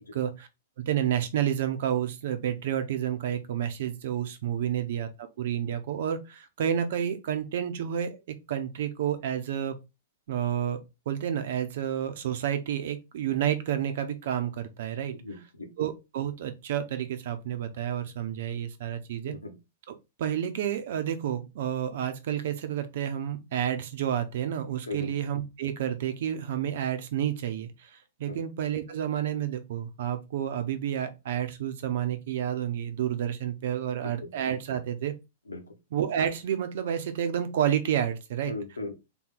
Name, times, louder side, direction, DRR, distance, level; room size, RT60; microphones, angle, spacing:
voice 1, 0.1-0.5 0.8-8.2 8.5-9.8 10.3-10.8 11.1-15.2 15.8-19.3 19.9-35.1 35.9-38.6, right 10 dB, 55° right, 0.8 m, -30 dB
voice 2, 15.2-15.7 19.2-19.5 24.9-25.1 28.2-28.4 34.2-34.3 35.5-35.7 38.4-38.9, left 2 dB, 80° left, 1.2 m, -37 dB
3.8 x 3.1 x 3.8 m
figure-of-eight pair, 105°, 0 cm